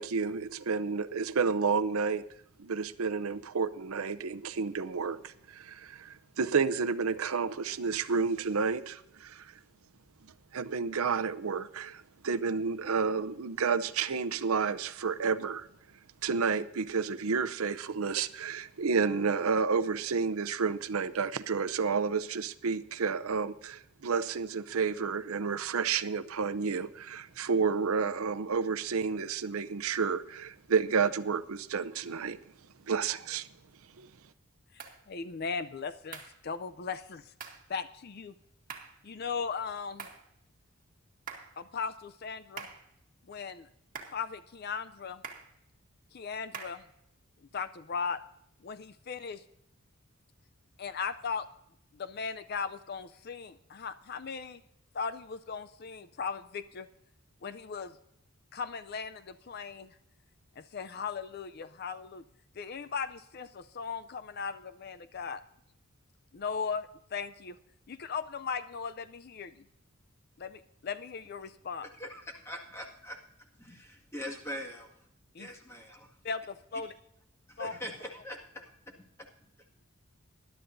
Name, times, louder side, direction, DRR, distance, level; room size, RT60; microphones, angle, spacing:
voice 1, 0.0-2.2 2.6-9.4 10.5-15.7 16.2-32.4 32.9-33.5 34.0-34.1, right 5 dB, 80° right, 0.6 m, -30 dB
voice 2, 34.7-37.3 37.7-38.3 39.0-40.1 41.6-42.7 43.3-43.7 44.1-45.2 46.1-46.8 47.5-48.2 48.6-49.4 50.8-51.5 51.9-54.6 54.9-56.9 57.4-58.0 58.5-60.0 60.6-62.2 62.6-65.4 66.3-67.6 67.9-69.6 70.4-71.9 75.3-75.5 76.2-76.9 77.6-77.7, left 5 dB, 45° left, 0.4 m, -38 dB
sound 1, 34.8-35.0 36.1-36.4 37.4-37.7 38.7-39.0 40.0-40.3 41.3-41.6 42.6-42.9 43.9-44.2 45.2-45.5 46.5-46.9, right 6 dB, 40° right, 1.8 m, -44 dB
voice 3, 71.9-73.2 73.6-74.9 75.4-76.1 77.5-79.0, left 1 dB, 10° left, 1.8 m, -42 dB
20.0 x 11.5 x 2.6 m
head